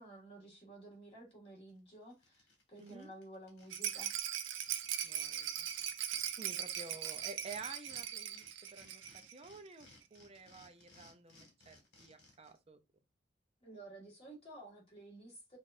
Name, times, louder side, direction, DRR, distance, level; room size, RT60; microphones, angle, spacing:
voice 1, 0.0-4.2 13.6-15.6, right 2 dB, 30° left, 1.8 m, -53 dB
sound 1, 1.7-1.8 2.1-4.0 4.3-4.4 4.6-8.0 8.3-12.6, left 2 dB, 60° left, 1.7 m, -62 dB
voice 2, 2.8-3.1 5.0-5.7 6.4-8.4 8.7-12.8, right 4 dB, 30° right, 0.6 m, -51 dB
Rattle, 3.7-9.4 9.7-9.8 10.0-10.1, right 10 dB, 85° right, 0.5 m, -40 dB
5.7 x 2.5 x 2.6 m
head